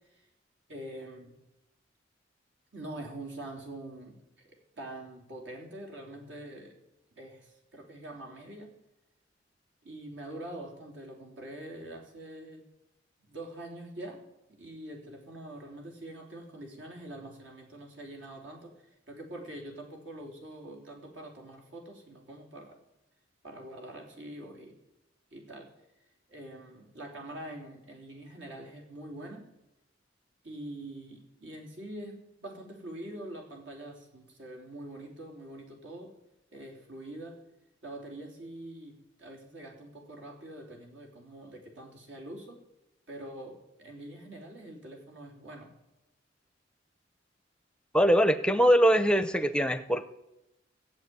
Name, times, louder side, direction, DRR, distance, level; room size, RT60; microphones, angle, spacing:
voice 1, 0.7-1.4 2.7-6.8 7.2-8.7 9.8-12.7 13.2-22.8 23.4-24.7 25.3-25.7 26.3-29.5 30.4-36.1 36.5-37.4 37.8-42.6 43.1-45.7 49.4-49.5, right 1 dB, 80° right, 1 dB, 3.6 m, -44 dB
voice 2, 47.9-50.0, equal, 5° left, 11 dB, 0.5 m, -22 dB
15.5 x 7.5 x 9.5 m, 0.93 s
head